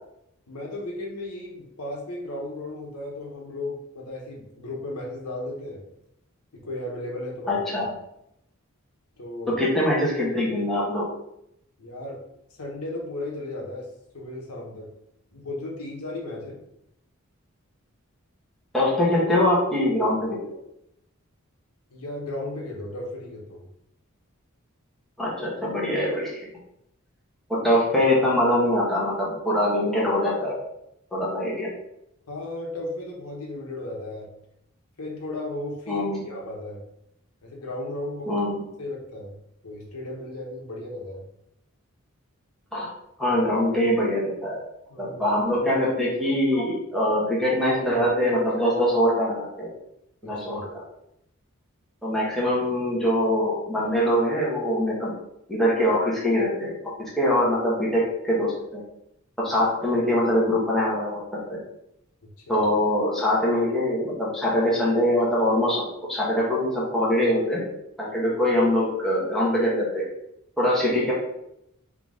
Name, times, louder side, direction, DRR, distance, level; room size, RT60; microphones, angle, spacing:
voice 1, 0.5-5.8 6.5-7.8 9.2-9.6 11.8-12.2 12.5-14.9 15.3-16.6 21.9-23.6 32.3-34.3 35.0-36.8 37.4-38.3 38.8-41.2 44.9-45.4 50.2-50.7 62.2-62.6, left 2 dB, 90° left, -1 dB, 1.0 m, -35 dB
voice 2, 7.5-7.9 9.5-11.1 18.7-20.4 25.2-26.5 27.5-30.6 31.1-31.7 35.9-36.3 38.3-38.6 42.7-42.9 43.2-44.7 45.0-49.7 50.2-50.8 52.0-55.1 55.5-56.7 57.0-58.8 59.4-61.6 62.5-67.6 68.0-70.1 70.6-71.1, left 1 dB, ahead, -7 dB, 1.1 m, -23 dB
3.8 x 2.8 x 3.7 m, 0.80 s
head